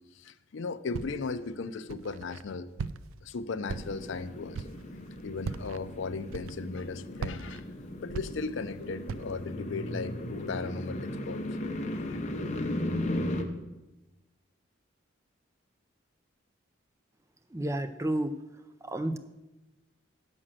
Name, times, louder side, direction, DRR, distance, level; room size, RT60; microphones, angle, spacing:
voice 1, 0.2-2.7 3.2-4.6 5.2-7.6 8.0-11.4 11.8-12.3, left 4 dB, 65° left, 10 dB, 0.5 m, -37 dB
Walk footsteps, 0.9-1.4 1.9-2.4 2.8-3.3 3.7-4.2 4.5-4.9 5.4-5.8 6.3-6.8 7.2-8.7 9.1-9.5, right 5 dB, 85° right, 0.4 m, -39 dB
sound 1, 3.7-13.4, left 1 dB, 35° left, 0.8 m, -36 dB
voice 2, 17.5-18.3 18.8-19.2, right 1 dB, 15° right, 10 dB, 0.4 m, -30 dB
7.6 x 6.3 x 7.4 m, 1.0 s
head